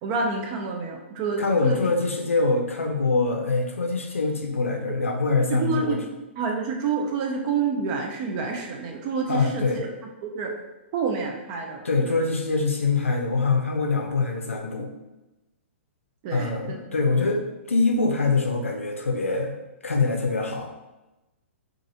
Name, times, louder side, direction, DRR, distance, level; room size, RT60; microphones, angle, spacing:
voice 1, 0.0-1.8 5.5-6.0 6.4-9.9 10.2-10.5 10.9-12.2 16.2-16.8, right 5 dB, 35° right, 2 dB, 0.4 m, -28 dB
voice 2, 1.4-6.0 9.3-9.8 11.8-14.9 16.3-19.6 19.8-20.7, left 3 dB, 80° left, 2 dB, 0.5 m, -24 dB
2.9 x 2.4 x 2.6 m, 1.0 s
figure-of-eight pair, 115°, 7 cm